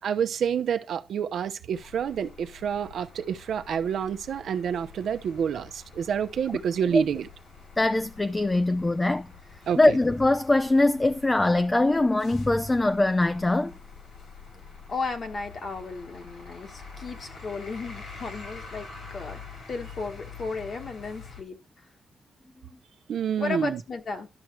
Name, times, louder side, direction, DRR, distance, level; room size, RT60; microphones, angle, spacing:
voice 1, 0.0-7.3 9.7-9.8 23.1-23.8, right 7 dB, 85° right, 0.9 m, -28 dB
sound 1, 1.7-21.4, left 4 dB, 70° left, 4.3 m, -46 dB
voice 2, 7.8-9.3 9.8-13.7, left 2 dB, 15° left, 0.4 m, -22 dB
voice 3, 14.9-19.4 19.7-21.6 23.4-24.3, left 4 dB, 45° left, 1.5 m, -34 dB
12.0 x 6.4 x 4.6 m
wide cardioid pair, 170°, 0 cm